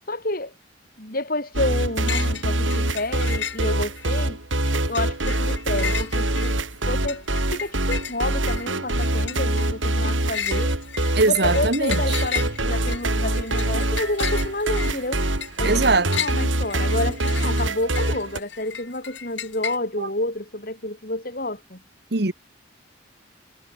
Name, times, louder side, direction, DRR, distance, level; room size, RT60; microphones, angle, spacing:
voice 1, 0.1-0.5 1.0-4.4 4.9-7.2 7.5-10.7 11.2-15.2 15.6-21.8, left 2 dB, 50° left, 5.8 m, -29 dB
sound 1, 1.5-18.4, right 1 dB, 85° right, 5.4 m, -24 dB
sound 2, 2.1-2.5 2.7-4.1 4.5-19.8, left 8 dB, 70° left, 4.7 m, -34 dB
voice 2, 11.1-12.0 15.6-16.1 20.0-20.1 22.1-22.3, right 3 dB, 60° right, 1.5 m, -20 dB
head